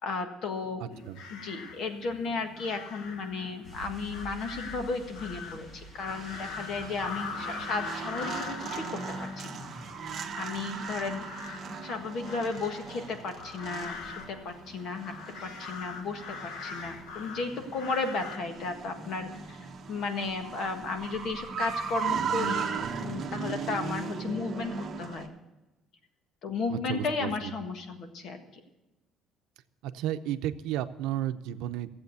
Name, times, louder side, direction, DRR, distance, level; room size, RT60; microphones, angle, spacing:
voice 1, 0.0-9.0 9.4-9.6 10.4-11.2 11.8-15.1 15.4-22.7 23.0-25.3 26.4-28.6, left 4 dB, 50° left, 6 dB, 1.6 m, -34 dB
voice 2, 0.8-1.2 26.7-27.5 29.8-31.9, right 12 dB, 90° right, 10 dB, 0.7 m, -33 dB
sound 1, 0.9-18.4, left 5 dB, 75° left, 1.3 m, -43 dB
sound 2, 3.6-10.1 10.4-10.5, right 3 dB, 15° left, 1.5 m, -50 dB
sound 3, 6.1-25.3, right 5 dB, 30° right, 1.3 m, -38 dB
14.5 x 7.9 x 8.0 m, 1.0 s
cardioid pair, 170°, 0 cm